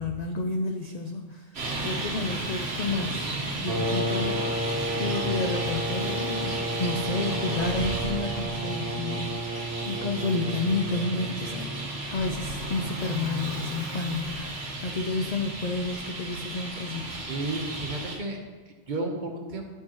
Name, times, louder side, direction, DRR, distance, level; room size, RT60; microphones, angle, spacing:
voice 1, 0.0-3.3 3.6-4.6 5.0-17.2, left 3 dB, 70° left, 4 dB, 0.4 m, -31 dB
Traffic noise roadway noise, 1.5-18.2, right 2 dB, 60° right, 1.3 m, -34 dB
sound 1, 3.7-12.0, right 1 dB, 75° right, 1.3 m, -32 dB
voice 2, 17.3-18.4 18.7-19.6, right 2 dB, 40° right, 2 dB, 1.0 m, -32 dB
11.5 x 5.8 x 3.0 m, 1.3 s
omnidirectional pair, 1.3 m